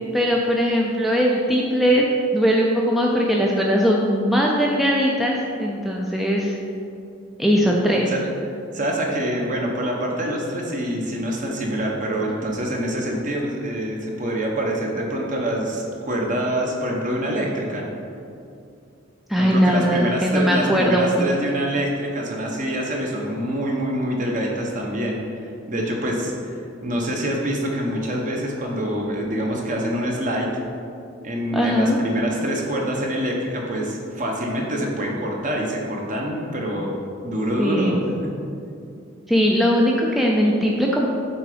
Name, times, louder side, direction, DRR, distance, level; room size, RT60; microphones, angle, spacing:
voice 1, 0.1-2.0 2.3-6.6 7.4-8.1 19.3-21.2 31.5-32.0 37.6-38.0 39.3-41.1, equal, ahead, -2 dB, 0.4 m, -20 dB
voice 2, 7.6-8.2 8.7-17.9 19.4-26.6 26.8-30.5 31.2-36.9 37.2-38.2, equal, 40° right, -1 dB, 1.0 m, -25 dB
7.2 x 3.8 x 5.0 m, 2.5 s
head